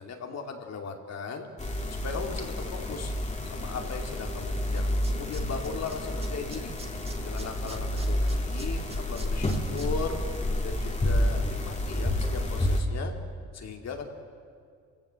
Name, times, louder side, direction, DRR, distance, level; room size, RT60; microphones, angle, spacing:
voice 1, 0.0-1.5 2.0-3.1 3.5-6.8 7.2-10.2 10.6-13.1 13.5-14.1, left 4 dB, 60° left, 3 dB, 2.7 m, -37 dB
sound 1, 1.6-12.8, left 1 dB, 25° left, 2.8 m, -29 dB
Tools, 4.4-4.5 4.8-5.9 6.2-9.9 10.3-10.4, right 2 dB, 20° right, 2.4 m, -46 dB
29.0 x 16.0 x 7.7 m, 2.2 s
cardioid pair, 90°, 30 cm